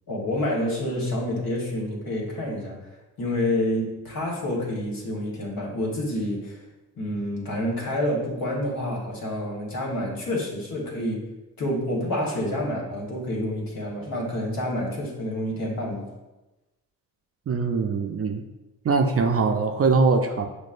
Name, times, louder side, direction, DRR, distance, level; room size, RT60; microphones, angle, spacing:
voice 1, 0.1-2.8 3.2-6.6 7.0-11.2 11.6-16.1, left 1 dB, 60° left, -2 dB, 1.4 m, -28 dB
voice 2, 17.5-18.4 18.8-20.5, right 4 dB, 35° right, 4 dB, 0.4 m, -22 dB
6.2 x 2.1 x 2.5 m, 1.1 s
supercardioid pair, 50°, 40 cm